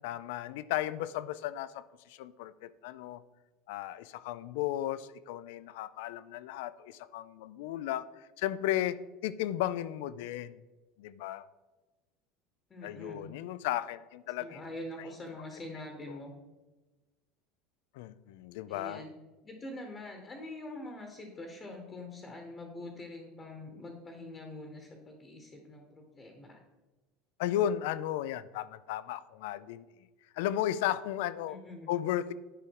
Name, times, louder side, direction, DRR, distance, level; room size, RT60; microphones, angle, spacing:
voice 1, 0.0-3.2 3.7-10.6 11.0-11.4 12.8-14.6 16.1-16.2 17.9-19.0 27.4-29.9 30.3-31.6 31.9-32.3, left 12 dB, 75° left, 16 dB, 0.4 m, -35 dB
voice 2, 12.7-13.3 14.4-16.3 18.7-19.1 19.4-26.6 31.5-31.9, left 1 dB, 20° left, 3 dB, 1.0 m, -44 dB
10.0 x 5.0 x 4.6 m, 1.1 s
supercardioid pair, 145°, 0 cm